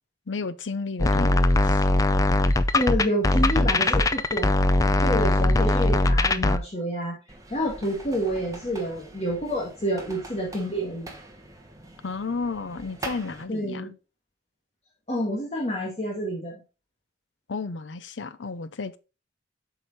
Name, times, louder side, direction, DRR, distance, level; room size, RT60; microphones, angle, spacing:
voice 1, 0.3-1.9 12.0-13.9 17.5-19.0, left 4 dB, 85° left, 0.7 m, -32 dB
sound 1, 1.0-6.6, left 2 dB, 20° left, 0.4 m, -21 dB
voice 2, 2.7-4.5 5.0-7.2 7.5-11.1 13.5-13.9 15.1-16.5, equal, 35° left, 1.7 m, -28 dB
sound 2, 7.3-13.4, right 1 dB, 20° right, 1.3 m, -43 dB
7.8 x 4.9 x 4.1 m
head